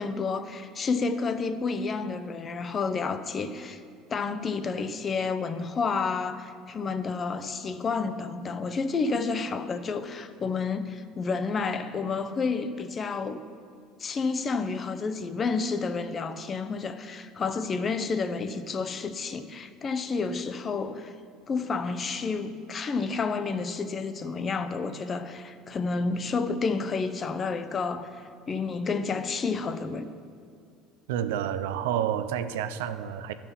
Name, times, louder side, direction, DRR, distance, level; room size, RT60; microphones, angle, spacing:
voice 1, 0.0-3.8 4.1-13.4 14.0-21.1 21.5-30.1, left 4 dB, 35° left, 0.7 m, -30 dB
voice 2, 31.1-33.3, right 10 dB, 85° right, 0.5 m, -29 dB
12.5 x 5.9 x 5.8 m
supercardioid pair, 90°, 0 cm